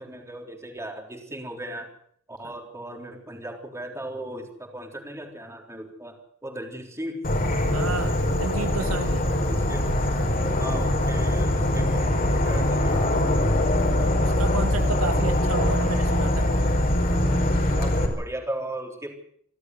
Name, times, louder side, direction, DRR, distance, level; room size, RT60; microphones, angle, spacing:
voice 1, 0.0-1.9 2.3-7.2 9.5-9.9 10.5-13.0 17.8-19.1, right 1 dB, 15° right, 3 dB, 3.8 m, -37 dB
Insect / Frog, 7.2-18.1, left 1 dB, 45° left, 4.6 m, -23 dB
voice 2, 7.7-9.2 14.2-16.4, right 2 dB, 70° right, 6 dB, 2.3 m, -31 dB
27.5 x 13.0 x 8.0 m, 0.65 s
head